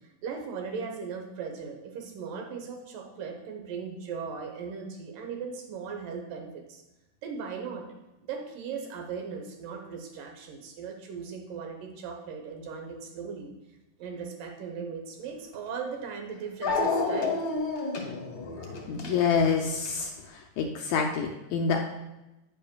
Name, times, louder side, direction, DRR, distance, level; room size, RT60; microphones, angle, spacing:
voice 1, 0.2-6.8 7.2-7.9 8.3-13.5 14.0-17.4, right 5 dB, 80° right, 3 dB, 2.7 m, -38 dB
Dog, 15.5-15.6 16.6-20.0, left 3 dB, 55° left, 1.0 m, -29 dB
voice 2, 18.9-20.1 20.6-21.8, left 5 dB, 80° left, 2 dB, 1.7 m, -26 dB
9.8 x 9.3 x 2.3 m, 0.97 s
omnidirectional pair, 3.8 m